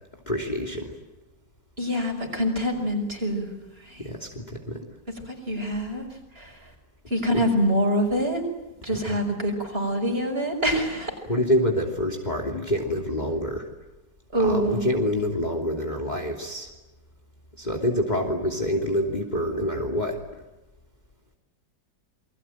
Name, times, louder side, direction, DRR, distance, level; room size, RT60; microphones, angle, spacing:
voice 1, 0.3-1.0 4.0-4.8 7.3-7.4 9.1-9.2 11.3-13.7 14.4-16.7 17.6-20.2, equal, 25° left, 3 dB, 3.1 m, -27 dB
voice 2, 1.8-3.5 3.8-4.0 5.3-6.1 6.4-6.6 7.1-8.4 8.8-11.1 14.3-14.9, equal, 30° right, 4 dB, 6.1 m, -25 dB
29.0 x 22.5 x 9.1 m, 1.0 s
omnidirectional pair, 1.9 m